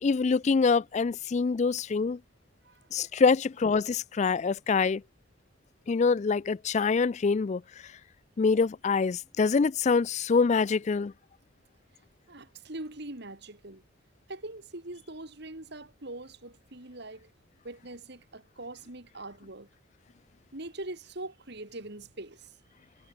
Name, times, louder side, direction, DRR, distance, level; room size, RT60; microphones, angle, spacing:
voice 1, 0.0-2.2 2.9-5.0 5.9-7.6 8.4-11.1, left 4 dB, 35° left, 0.3 m, -25 dB
voice 2, 12.3-13.8 14.3-17.3 17.6-19.7 20.5-22.5, right 2 dB, 55° right, 2.7 m, -42 dB
head